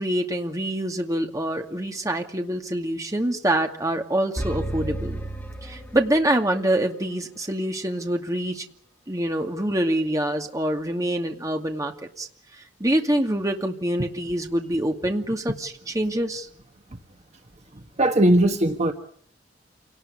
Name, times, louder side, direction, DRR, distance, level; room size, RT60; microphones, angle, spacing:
voice 1, 0.0-5.2 5.6-8.6 9.1-12.3 12.8-16.5, right 1 dB, 20° right, 4 dB, 2.4 m, -25 dB
sound 1, 4.4-6.5, right 1 dB, 10° left, 3.0 m, -32 dB
voice 2, 18.0-18.9, right 1 dB, 35° right, 5 dB, 1.5 m, -18 dB
28.0 x 19.0 x 10.0 m, 0.63 s
head